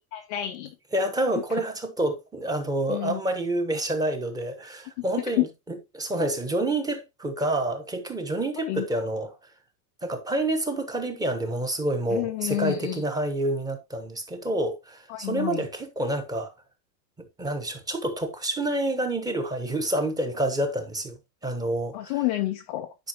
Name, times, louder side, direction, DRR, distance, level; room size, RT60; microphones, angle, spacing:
voice 1, 0.1-0.7 1.5-1.6 2.9-3.2 5.4-5.5 8.6-8.9 12.1-13.0 15.1-15.7 21.9-22.9, left 16 dB, 25° left, 0.4 m, -29 dB
voice 2, 0.9-5.5 5.9-9.3 10.0-16.5 17.2-21.2 21.4-22.1, right 1 dB, 10° right, 1.0 m, -28 dB
10.5 x 5.1 x 2.9 m
supercardioid pair, 145°, 50 cm